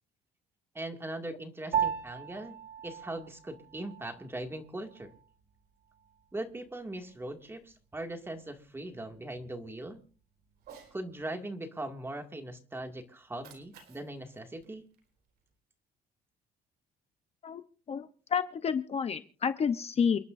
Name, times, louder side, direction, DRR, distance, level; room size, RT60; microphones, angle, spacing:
voice 1, 0.7-2.6 2.8-5.2 6.3-10.0 10.9-14.9, right 1 dB, 15° right, 4 dB, 2.2 m, -40 dB
Piano, 1.7-11.3, right 8 dB, 55° right, 3.5 m, -40 dB
Cat, 10.6-11.0 13.2-15.5, right 7 dB, 75° right, 4.5 m, -56 dB
voice 2, 17.9-20.2, left 6 dB, 40° left, 10 dB, 0.8 m, -30 dB
29.0 x 11.0 x 2.6 m, 0.41 s
cardioid pair, 110°, 17 cm